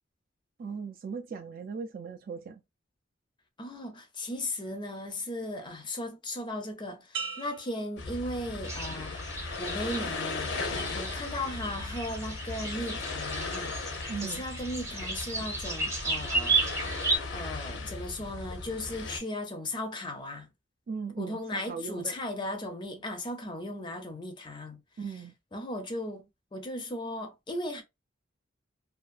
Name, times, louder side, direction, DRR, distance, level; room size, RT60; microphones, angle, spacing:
voice 1, 0.6-2.6 14.1-14.4 20.9-22.2 25.0-25.3, right 5 dB, 50° right, 0.3 m, -38 dB
voice 2, 3.6-9.2 9.6-10.6 10.9-13.8 14.2-16.6 17.3-20.5 21.2-24.8 25.5-27.8, left 1 dB, 25° left, 0.5 m, -36 dB
sound 1, 7.1-8.9 9.4-9.9, right 5 dB, 70° right, 0.7 m, -41 dB
sound 2, 8.0-19.2, left 3 dB, 80° left, 0.6 m, -37 dB
sound 3, 8.6-17.2, right 3 dB, 15° right, 0.8 m, -34 dB
2.5 x 2.3 x 2.4 m
head